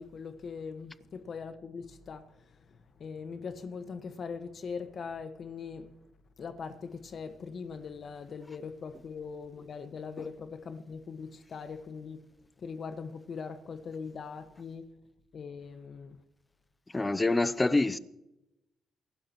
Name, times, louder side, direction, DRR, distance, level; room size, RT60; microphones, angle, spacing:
voice 1, 0.0-5.9 6.4-12.2 12.6-14.8 15.3-16.2, left 5 dB, 50° left, 1.5 m, -41 dB
voice 2, 16.9-18.0, left 2 dB, 15° left, 0.7 m, -26 dB
24.5 x 12.5 x 3.1 m
cardioid pair, 90°, 0 cm